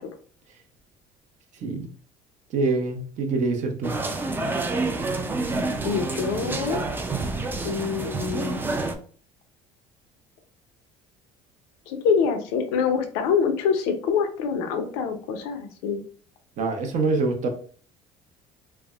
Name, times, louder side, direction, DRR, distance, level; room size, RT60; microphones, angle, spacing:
voice 1, 2.5-3.9 16.6-17.5, right 3 dB, 55° right, 5 dB, 0.7 m, -25 dB
sound 1, 3.8-9.0, right 3 dB, 15° right, 0.4 m, -28 dB
voice 2, 5.8-6.8 7.6-8.6 11.9-16.0, left 6 dB, 90° left, 6 dB, 0.6 m, -25 dB
3.3 x 2.1 x 2.3 m, 0.43 s
supercardioid pair, 100°, 15 cm